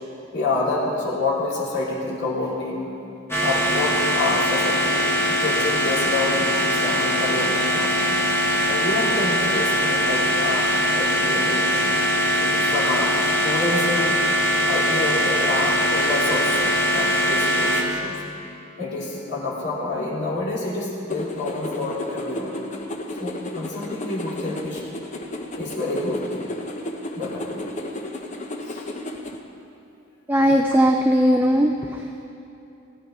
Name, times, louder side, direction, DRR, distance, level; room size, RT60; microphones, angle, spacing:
voice 1, 0.3-2.9 3.4-8.2 8.6-11.9 12.4-14.2 14.7-18.2 18.7-22.6 23.1-24.8 25.5-26.6 27.1-27.8 28.6-28.8, left 2 dB, 60° left, -5 dB, 2.7 m, -28 dB
sound 1, 3.3-17.8, equal, 10° left, 1.5 m, -21 dB
sound 2, 21.1-29.4, left 1 dB, 35° left, 0.9 m, -33 dB
voice 2, 30.3-32.3, equal, 10° right, 3 dB, 0.5 m, -19 dB
19.0 x 11.5 x 3.7 m, 2.9 s
head